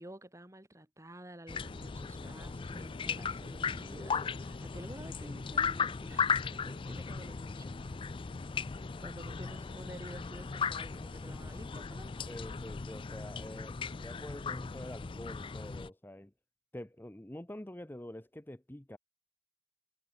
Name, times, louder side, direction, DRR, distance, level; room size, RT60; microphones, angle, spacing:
voice 1, 0.0-8.0 9.0-12.3, right 1 dB, 15° right, 3.7 m, -51 dB
sound 1, 1.5-15.9, left 5 dB, 30° left, 0.4 m, -37 dB
voice 2, 12.3-16.3 16.7-19.0, left 1 dB, 10° left, 0.8 m, -46 dB
head